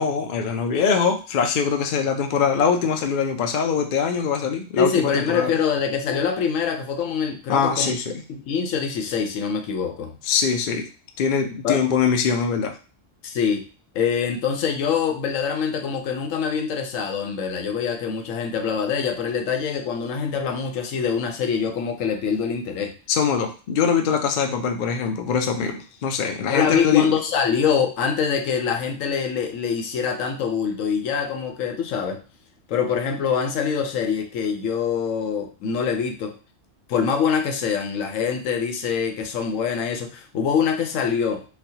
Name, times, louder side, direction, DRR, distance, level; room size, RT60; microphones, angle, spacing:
voice 1, 0.0-5.5 7.5-8.2 10.2-10.9 11.2-12.7 23.1-27.2, left 6 dB, 60° left, 6 dB, 0.5 m, -22 dB
voice 2, 4.8-7.9 8.3-10.2 11.6-11.8 13.2-13.6 13.9-22.9 26.5-32.2 32.7-36.4 36.9-41.4, left 6 dB, 85° left, 5 dB, 1.0 m, -24 dB
4.1 x 2.2 x 2.7 m, 0.35 s
omnidirectional pair, 1.3 m